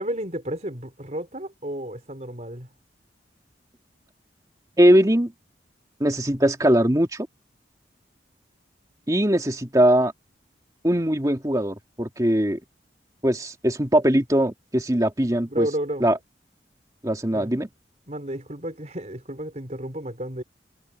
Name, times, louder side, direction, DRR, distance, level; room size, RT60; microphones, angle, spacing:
voice 1, 0.0-2.7 15.5-16.1 17.3-17.5 18.1-20.4, right 1 dB, 40° right, 4.6 m, -32 dB
voice 2, 4.8-5.3 6.0-7.3 9.1-10.1 10.8-12.6 13.2-15.7 16.0-16.2 17.0-17.7, equal, 20° right, 2.3 m, -20 dB
head